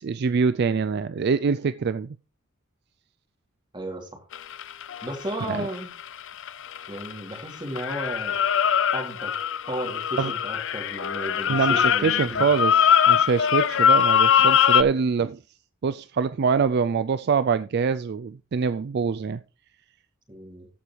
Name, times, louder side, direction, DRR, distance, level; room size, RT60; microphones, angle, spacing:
voice 1, 0.0-2.2 5.5-5.7 10.2-10.3 11.5-15.4 15.8-19.4, right 5 dB, 55° right, 0.4 m, -24 dB
voice 2, 3.7-4.2 5.0-5.9 6.9-8.4 8.9-9.3 9.7-12.5 20.3-20.7, right 1 dB, 25° right, 2.9 m, -34 dB
sound 1, 4.3-7.4 7.8-14.8, left 8 dB, 65° left, 0.5 m, -22 dB
14.5 x 5.0 x 4.6 m
head